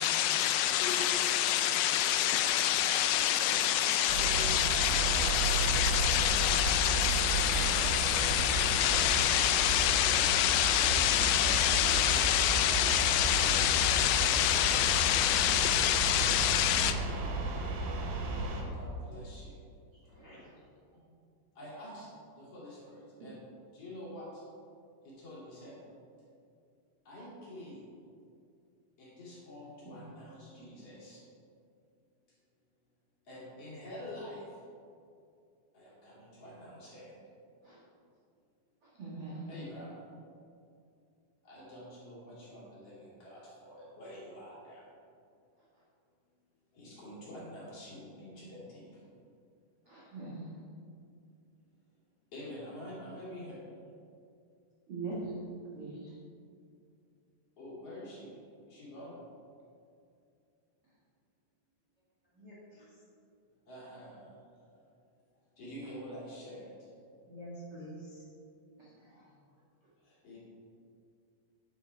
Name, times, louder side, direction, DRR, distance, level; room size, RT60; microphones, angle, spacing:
voice 1, 0.0-17.0, left 12 dB, 90° left, 9 dB, 3.2 m, -27 dB
voice 2, 0.6-1.1 2.8-4.8 8.8-9.0 9.8-10.3 11.2-14.7 18.1-19.7 20.3-20.4 21.5-22.1 22.4-23.4 23.7-24.4 25.0-25.8 27.0-27.9 29.0-31.2 33.2-34.6 35.7-37.1 39.5-40.0 41.4-44.9 46.7-49.0 52.3-53.6 57.6-59.2 63.7-64.8 65.6-66.8 70.0-70.4, left 1 dB, 40° left, -7 dB, 3.0 m, -47 dB
sound 1, 4.1-18.6, right 2 dB, 90° right, 3.8 m, -33 dB
voice 3, 20.0-20.4 20.9-21.0 62.2-63.0 67.3-68.2, equal, 40° right, -8 dB, 1.6 m, -49 dB
voice 4, 38.8-39.5 49.8-50.5 54.9-55.3 55.7-56.1 68.8-69.2, right 3 dB, 75° right, -8 dB, 1.2 m, -42 dB
9.2 x 9.0 x 4.5 m, 2.4 s
omnidirectional pair, 5.5 m